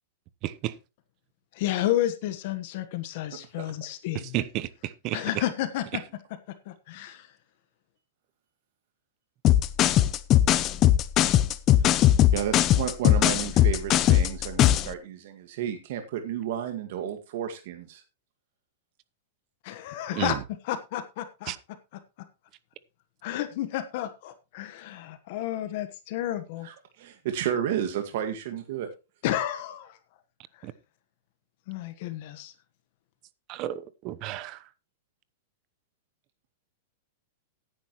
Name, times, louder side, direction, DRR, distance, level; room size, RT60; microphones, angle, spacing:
voice 1, 0.4-0.7 4.3-5.4 20.1-20.4 21.5-21.6 30.6-30.7 33.5-34.6, right 14 dB, 35° right, 0.9 m, -32 dB
voice 2, 1.5-4.4 5.1-6.0 6.5-7.3 19.6-20.4 20.6-21.5 23.2-26.7 29.2-30.0 30.5-30.7 31.7-32.5, left 13 dB, 55° left, 1.3 m, -31 dB
voice 3, 3.3-3.7 11.8-18.0 26.6-28.9, right 10 dB, 60° right, 1.8 m, -32 dB
sound 1, 9.4-14.9, left 12 dB, 30° left, 0.7 m, -20 dB
14.5 x 10.0 x 3.1 m
supercardioid pair, 150°, 0 cm